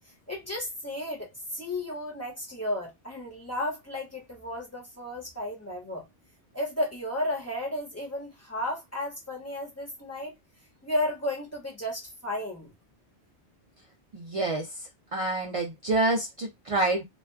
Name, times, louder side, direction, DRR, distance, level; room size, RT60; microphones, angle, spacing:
voice 1, 0.3-6.1 6.5-10.3 10.8-12.7, left 1 dB, 15° left, 1.0 m, -33 dB
voice 2, 14.1-14.7 15.1-17.0, right 2 dB, 65° right, 0.3 m, -27 dB
2.8 x 2.3 x 2.2 m
omnidirectional pair, 1.1 m